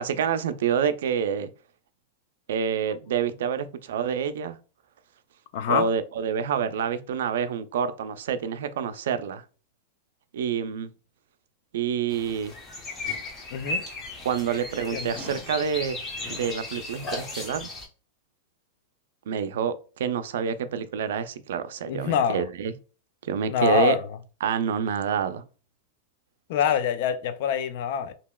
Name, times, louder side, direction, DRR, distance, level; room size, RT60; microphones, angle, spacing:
voice 1, 0.0-1.5 2.5-4.6 5.7-9.4 10.3-10.9 11.7-12.5 14.2-16.0 16.3-17.7 19.3-22.7 23.2-24.0 24.4-25.4, right 7 dB, 80° right, 0.3 m, -27 dB
voice 2, 5.5-5.9 13.5-13.8 14.9-15.2 21.9-22.4 23.5-24.0 26.5-28.1, left 8 dB, 60° left, 0.4 m, -25 dB
sound 1, 12.1-17.9, left 2 dB, 25° left, 0.9 m, -35 dB
2.9 x 2.7 x 2.2 m
supercardioid pair, 140°, 0 cm